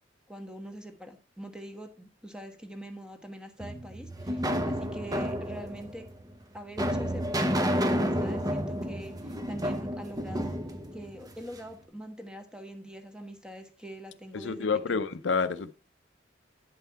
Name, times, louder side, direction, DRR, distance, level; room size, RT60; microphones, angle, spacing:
voice 1, 0.3-6.1 6.5-10.6 10.9-15.0, right 1 dB, 5° right, 1.2 m, -44 dB
sound 1, 3.6-11.7, equal, 20° right, 0.9 m, -31 dB
voice 2, 14.3-15.7, left 5 dB, 75° left, 0.6 m, -28 dB
9.4 x 5.7 x 4.6 m
head